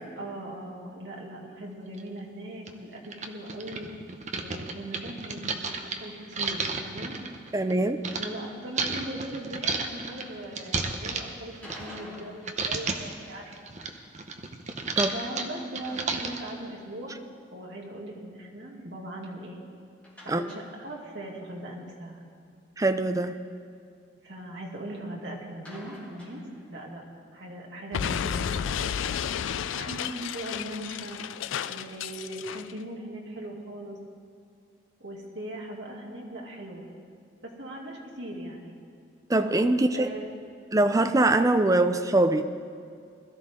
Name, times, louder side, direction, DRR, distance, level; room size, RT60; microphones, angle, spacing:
voice 1, 0.2-3.9 4.4-7.2 8.1-13.7 15.0-17.2 17.5-19.6 20.2-22.2 24.2-27.0 27.3-28.9 29.7-31.2 31.7-34.0 35.0-36.9 37.4-38.8 39.9-40.3, right 1 dB, 65° right, -2 dB, 2.3 m, -39 dB
sound 1, 2.0-2.1 2.7-2.8 3.0-8.3 8.8-12.2 12.5-13.1 13.5-16.5, right 4 dB, 40° right, 0.8 m, -32 dB
voice 2, 7.5-8.0 15.0-15.1 20.3-20.5 22.8-23.4 39.3-40.1 40.7-42.4, right 2 dB, 20° right, 9 dB, 0.5 m, -23 dB
sound 2, 11.6-13.7 20.0-21.3 21.6-21.7 22.0-22.1 25.6-27.0, left 1 dB, 5° left, 2.9 m, -49 dB
Explosion, 27.9-32.7, left 8 dB, 90° left, 0.4 m, -32 dB
21.0 x 13.0 x 3.7 m, 2.3 s
head